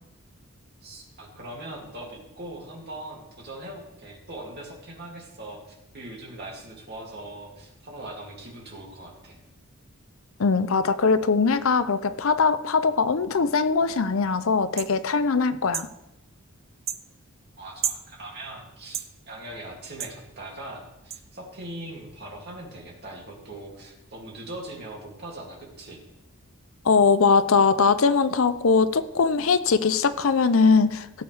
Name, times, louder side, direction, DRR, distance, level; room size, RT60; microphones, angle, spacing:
voice 1, 0.8-9.4 17.6-26.0, right 1 dB, 50° right, -2 dB, 2.6 m, -41 dB
voice 2, 10.4-15.9 26.8-31.1, left 4 dB, 70° left, 12 dB, 0.6 m, -21 dB
sound 1, 14.8-14.9 15.7-15.9 16.9-17.0 17.8-18.0 18.9-19.1 20.0-20.2 21.1-21.2, right 9 dB, 30° right, 0.4 m, -30 dB
17.0 x 7.9 x 3.4 m, 0.92 s
head